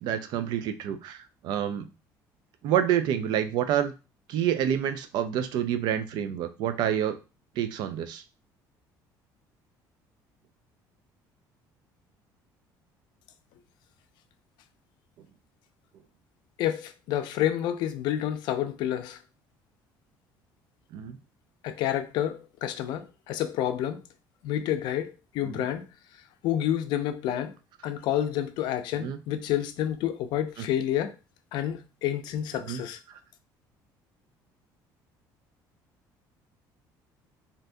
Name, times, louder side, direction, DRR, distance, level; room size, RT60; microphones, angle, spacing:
voice 1, 0.0-1.9 2.6-3.9 4.3-7.2 7.6-8.2 20.9-21.2 25.4-25.6 29.0-29.2 32.7-32.8, right 10 dB, 65° right, 0.4 m, -28 dB
voice 2, 16.6-19.2 21.6-24.0 24.4-25.8 26.4-27.5 27.8-31.1 31.5-33.0, left 11 dB, 70° left, 0.4 m, -29 dB
3.3 x 2.6 x 2.6 m
cardioid pair, 150°, 8 cm